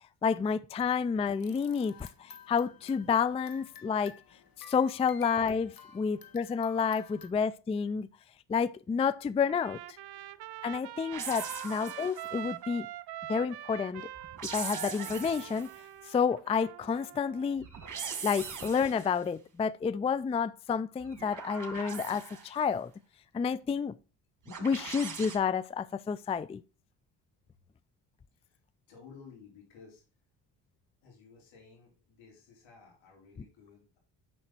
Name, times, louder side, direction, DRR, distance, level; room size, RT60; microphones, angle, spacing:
voice 1, 0.2-4.1 4.7-8.1 8.5-9.8 10.6-12.9 13.3-14.1 14.4-15.7 16.1-17.7 18.2-22.9 23.3-23.9 24.6-26.6, left 6 dB, 15° left, 0.3 m, -30 dB
sound 1, 1.4-7.3, left 6 dB, 50° left, 1.5 m, -53 dB
Trumpet, 9.5-17.6, right 13 dB, 55° right, 0.7 m, -44 dB
sound 2, 11.1-12.4 14.1-15.8 17.6-19.2 21.0-22.6 24.5-25.4, right 6 dB, 40° right, 2.3 m, -41 dB
voice 2, 28.9-30.0 31.0-34.0, left 5 dB, 80° left, 4.0 m, -55 dB
6.6 x 6.0 x 4.4 m
supercardioid pair, 55°, 46 cm